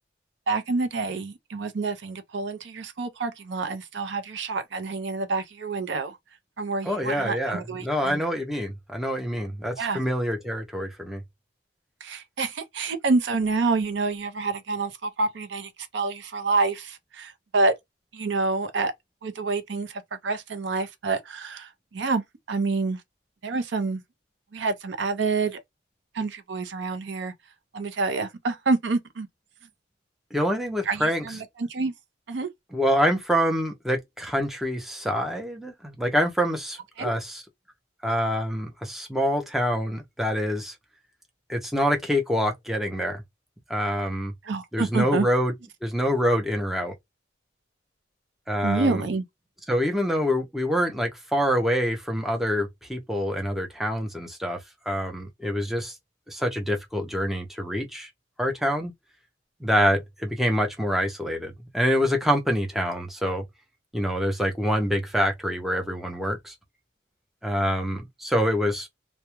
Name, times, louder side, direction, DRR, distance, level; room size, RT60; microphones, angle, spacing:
voice 1, 0.5-6.2 6.6-8.2 9.8-10.0 12.0-17.7 18.1-18.9 19.2-23.0 23.4-24.0 24.5-25.6 26.1-27.3 27.7-29.3 30.9-31.9 32.3-32.5 37.0-37.1 44.4-45.3 48.6-49.2, right 3 dB, 70° right, 0.5 m, -27 dB
voice 2, 6.8-11.2 30.3-31.2 32.7-37.4 38.0-40.8 41.5-43.2 43.7-44.3 44.7-45.5 45.8-46.9 48.5-49.0 49.7-54.6 54.9-55.9 56.3-58.1 58.4-58.9 59.6-63.4 63.9-66.5 67.4-68.9, equal, ahead, 0.5 m, -26 dB
2.2 x 2.1 x 2.8 m
head